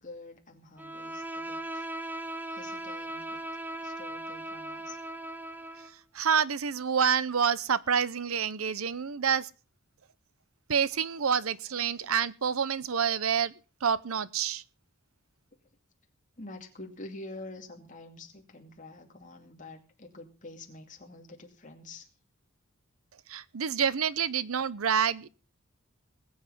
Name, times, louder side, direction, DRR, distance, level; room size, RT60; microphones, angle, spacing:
voice 1, 0.0-2.1 2.5-3.4 3.8-5.0 16.4-22.1, left 2 dB, 40° left, 2.6 m, -47 dB
Bowed string instrument, 0.8-6.0, right 1 dB, 10° right, 0.7 m, -38 dB
voice 2, 6.1-9.5 10.7-13.5 13.8-14.6 23.3-25.3, right 7 dB, 90° right, 0.7 m, -28 dB
20.0 x 8.0 x 5.5 m
head